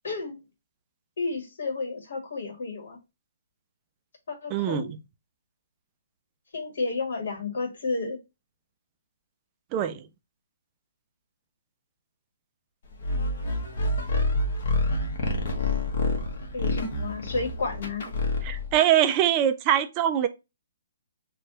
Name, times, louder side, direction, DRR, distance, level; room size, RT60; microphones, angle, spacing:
voice 1, 0.0-0.4 1.2-3.0 4.3-4.9 6.5-8.2 16.5-18.1, left 3 dB, 70° left, 1.4 m, -31 dB
voice 2, 4.5-4.9 9.7-10.0 18.4-20.3, right 10 dB, 25° right, 0.3 m, -23 dB
sound 1, 13.0-18.8, left 2 dB, 55° left, 1.0 m, -27 dB
3.3 x 2.2 x 3.7 m
hypercardioid pair, 160°, 0 cm